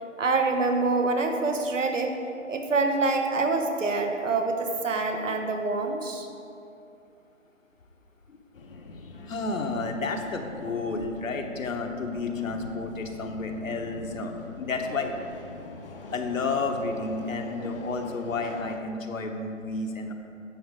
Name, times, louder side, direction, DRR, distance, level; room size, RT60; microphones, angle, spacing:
voice 1, 0.2-2.1 2.5-6.3, right 3 dB, 70° right, 4 dB, 1.2 m, -26 dB
Subway metro underground, 8.5-18.8, left 2 dB, 45° left, 0.7 m, -43 dB
voice 2, 9.3-15.1 16.1-20.1, left 3 dB, 80° left, 4 dB, 1.2 m, -31 dB
10.5 x 7.2 x 3.7 m, 2.6 s
hypercardioid pair, 165°, 39 cm